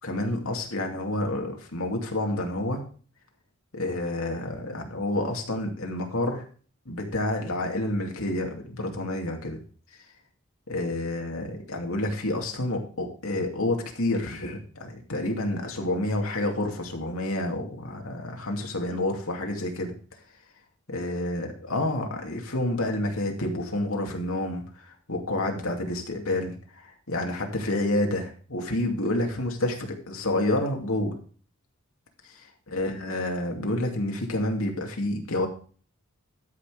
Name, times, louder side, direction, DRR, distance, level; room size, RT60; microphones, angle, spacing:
voice 1, 0.0-2.8 3.7-6.4 6.9-9.6 10.7-19.9 20.9-31.2 32.2-35.5, left 1 dB, 70° left, 2 dB, 2.5 m, -29 dB
12.5 x 6.1 x 5.0 m, 0.41 s
head